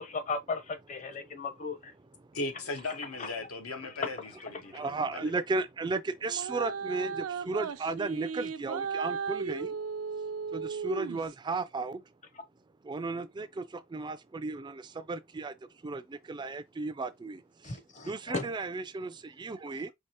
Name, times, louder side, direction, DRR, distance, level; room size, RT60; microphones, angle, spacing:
voice 1, 0.0-1.9 17.6-18.5, left 4 dB, 35° left, 0.8 m, -36 dB
voice 2, 2.3-5.3, left 2 dB, 80° left, 1.0 m, -38 dB
voice 3, 4.7-9.7 10.5-12.0 12.9-13.6 13.9-14.8 15.1-15.5 15.8-16.0 16.3-17.4 18.1-19.9, right 3 dB, 20° right, 0.3 m, -34 dB
sound 1, 6.3-11.3, right 6 dB, 90° right, 0.5 m, -35 dB
4.6 x 2.8 x 2.9 m
head